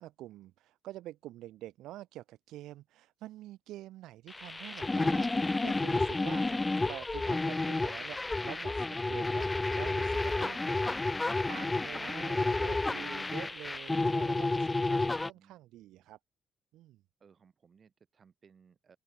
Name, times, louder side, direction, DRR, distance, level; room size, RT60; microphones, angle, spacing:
voice 1, 0.0-16.2 16.7-17.0, right 15 dB, 90° right, 1.0 m, -47 dB
sound 1, 4.3-15.3, left 2 dB, 20° left, 0.4 m, -31 dB
voice 2, 15.3-16.1 17.2-19.0, right 6 dB, 45° right, 5.7 m, -63 dB
open air
cardioid pair, 90°, 0 cm